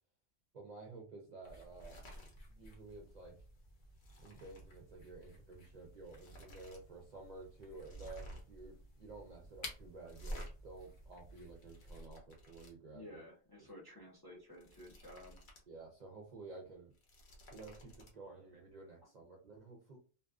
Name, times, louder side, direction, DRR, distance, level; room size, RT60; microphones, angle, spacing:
voice 1, 0.5-2.0 2.5-3.4 4.2-13.2 13.6-13.7 15.7-16.9 17.5-20.0, right 3 dB, 50° right, 0 dB, 0.5 m, -52 dB
sound 1, 1.4-12.0, left 1 dB, 50° left, 0.8 m, -55 dB
sound 2, 1.7-2.4 2.7-3.0 3.3-4.7 5.6-5.7 6.0-6.8 7.1-7.2 7.8-8.6 10.0-10.5 11.3-12.7 14.4-15.7 16.0-16.1 16.8-18.1, right 1 dB, 65° left, 1.1 m, -51 dB
voice 2, 12.9-15.4, left 1 dB, 30° left, -2 dB, 0.5 m, -53 dB
2.6 x 2.4 x 2.3 m, 0.37 s
omnidirectional pair, 1.2 m